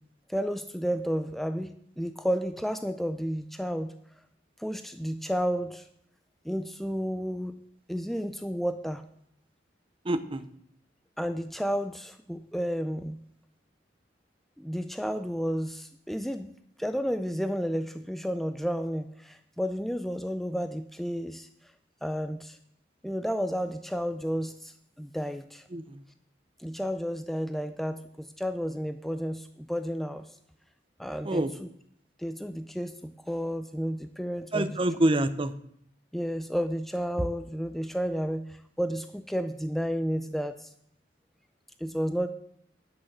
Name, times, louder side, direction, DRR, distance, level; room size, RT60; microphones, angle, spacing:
voice 1, 0.3-3.9 4.6-5.9 6.4-7.6 7.9-9.0 11.2-13.2 14.6-16.5 16.8-21.5 22.0-22.6 23.0-25.6 26.6-30.4 31.0-31.7 32.2-34.7 36.1-40.7 41.8-42.3, equal, ahead, 9 dB, 0.4 m, -32 dB
voice 2, 10.0-10.5 25.7-26.0 31.2-31.5 34.5-35.5, right 1 dB, 30° right, 11 dB, 0.7 m, -26 dB
10.5 x 6.3 x 7.4 m, 0.70 s
head